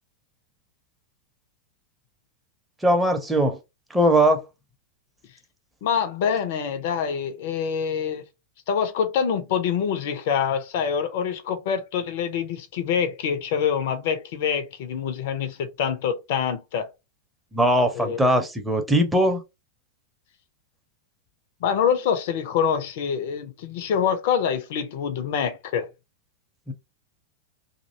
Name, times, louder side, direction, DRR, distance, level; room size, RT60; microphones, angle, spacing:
voice 1, 2.8-3.6 3.9-4.4 17.5-19.4 26.7-26.8, right 1 dB, 5° right, 0.6 m, -20 dB
voice 2, 5.8-8.2 8.7-16.9 17.9-18.2 21.6-25.9, left 7 dB, 50° left, 0.4 m, -25 dB
2.5 x 2.0 x 2.6 m
figure-of-eight pair, 90°, 0 cm